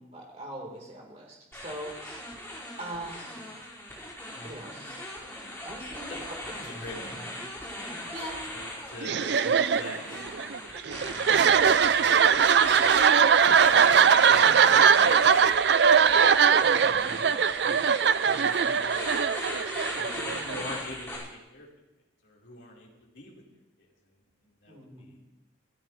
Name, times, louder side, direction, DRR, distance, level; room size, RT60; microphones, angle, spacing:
voice 1, 0.0-2.2 2.8-3.4 4.4-5.0 5.6-6.7 8.1-8.4 13.6-14.0 16.8-17.1 19.9-20.6 24.7-25.1, right 1 dB, 35° right, -1 dB, 3.7 m, -42 dB
sound 1, 1.5-21.2, left 1 dB, 10° left, 5.0 m, -39 dB
voice 2, 6.8-7.4 8.0-8.1 8.5-10.3 10.8-12.5 14.3-16.1 16.7-17.2 18.3-19.2 20.0-21.7 22.2-23.4 23.8-24.2 24.6-25.2, left 1 dB, 65° left, -3 dB, 4.3 m, -45 dB
sound 2, 9.0-20.7, right 7 dB, 60° right, 0.4 m, -21 dB
26.0 x 14.0 x 3.2 m, 0.96 s
head